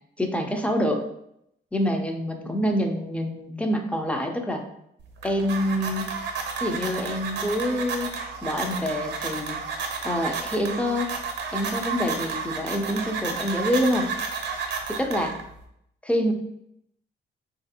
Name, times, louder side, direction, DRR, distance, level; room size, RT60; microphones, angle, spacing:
voice 1, 0.2-1.0 1.7-4.6 5.2-6.1 6.6-8.1 8.4-9.6 10.0-11.2 11.5-14.1 14.9-15.4 16.0-16.3, equal, 5° left, 4 dB, 0.4 m, -26 dB
sound 1, 5.0-15.6, right 5 dB, 75° right, 0.6 m, -32 dB
3.2 x 2.5 x 2.7 m, 0.76 s
cardioid pair, 100°, 19 cm